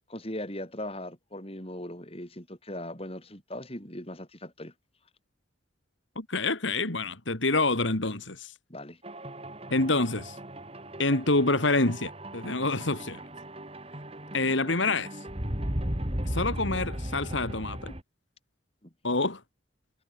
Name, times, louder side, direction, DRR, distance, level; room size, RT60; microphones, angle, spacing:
voice 1, 0.1-4.7 8.7-9.0 18.8-18.9, left 1 dB, 30° left, 5.3 m, -39 dB
voice 2, 6.2-8.5 9.7-10.4 11.0-13.2 14.3-15.1 16.3-17.9 19.0-19.4, left 2 dB, 70° left, 2.8 m, -27 dB
sound 1, 9.0-18.0, right 1 dB, 30° right, 4.1 m, -36 dB
head